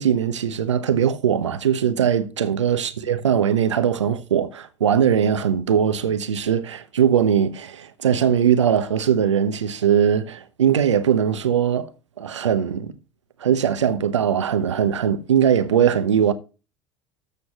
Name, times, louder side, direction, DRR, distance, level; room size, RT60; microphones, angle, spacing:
voice 1, 0.0-11.9 12.2-12.9 13.4-16.3, right 8 dB, 85° right, 0.9 m, -20 dB
13.5 x 6.8 x 2.9 m
hypercardioid pair, 70°, 15 cm